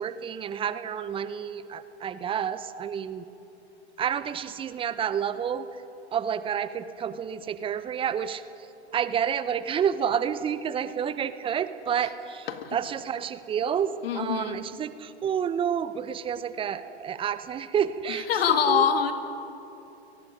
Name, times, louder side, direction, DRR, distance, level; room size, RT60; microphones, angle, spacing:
voice 1, 0.0-3.2 4.0-5.7 6.1-8.4 8.9-18.3 18.7-18.9, right 8 dB, 15° right, 14 dB, 0.7 m, -29 dB
voice 2, 12.5-12.8 14.0-14.6 18.1-19.1, left 8 dB, 60° left, 8 dB, 2.0 m, -25 dB
28.5 x 19.0 x 5.2 m, 3.0 s
figure-of-eight pair, 100°, 34 cm